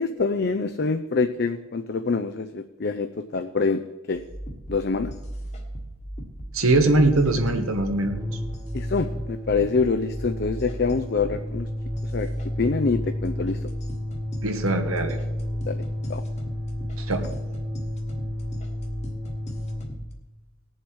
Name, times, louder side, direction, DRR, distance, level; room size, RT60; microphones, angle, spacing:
voice 1, 0.0-3.8 4.1-4.2 4.7-5.1 8.7-11.7 12.1-12.3 12.6-13.7 15.7-16.2, left 4 dB, 50° left, 8 dB, 0.5 m, -25 dB
sound 1, 4.1-20.1, right 1 dB, 30° left, 1.4 m, -37 dB
voice 2, 6.5-8.4 14.4-15.2 17.0-17.2, right 2 dB, 85° right, 5 dB, 1.4 m, -22 dB
sound 2, 7.9-19.9, left 1 dB, 20° right, 1.2 m, -32 dB
19.0 x 7.3 x 4.7 m, 1.1 s
head